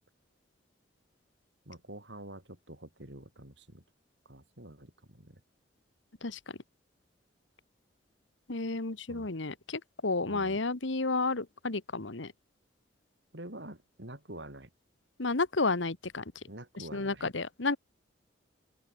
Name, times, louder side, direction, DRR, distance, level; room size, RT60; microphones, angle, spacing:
voice 1, 1.7-3.8 4.2-5.4 9.1-9.3 10.2-10.6 13.3-14.7 16.5-17.3, right 1 dB, 65° right, 5.9 m, -47 dB
voice 2, 8.5-12.3 15.2-16.2 16.9-17.8, left 3 dB, 80° left, 1.5 m, -31 dB
open air
head